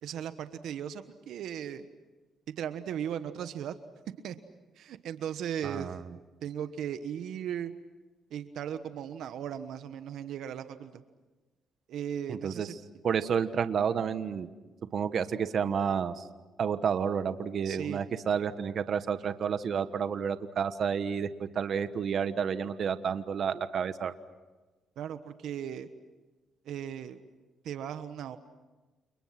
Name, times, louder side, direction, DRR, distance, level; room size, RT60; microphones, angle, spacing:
voice 1, 0.0-1.9 2.6-3.7 4.2-4.4 4.7-6.0 6.4-7.7 8.3-11.0 11.9-12.8 17.6-18.0 25.0-25.9 26.6-27.2 27.6-28.4, right 9 dB, 75° right, 10 dB, 1.2 m, -37 dB
voice 2, 5.6-6.0 12.3-12.7 13.0-14.5 14.9-16.3 16.6-24.1, right 7 dB, 55° right, 11 dB, 1.3 m, -30 dB
29.5 x 29.0 x 6.0 m, 1.2 s
cardioid pair, 90°, 0 cm